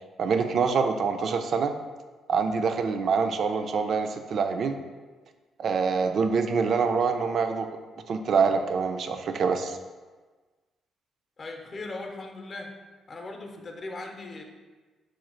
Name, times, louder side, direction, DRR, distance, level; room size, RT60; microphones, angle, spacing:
voice 1, 0.2-1.7 2.3-4.8 5.6-7.7 8.1-9.8, right 5 dB, 60° right, 7 dB, 0.4 m, -25 dB
voice 2, 11.4-12.7 13.1-14.4, left 2 dB, 40° left, 3 dB, 0.6 m, -38 dB
4.9 x 2.4 x 4.4 m, 1.3 s
cardioid pair, 90°, 0 cm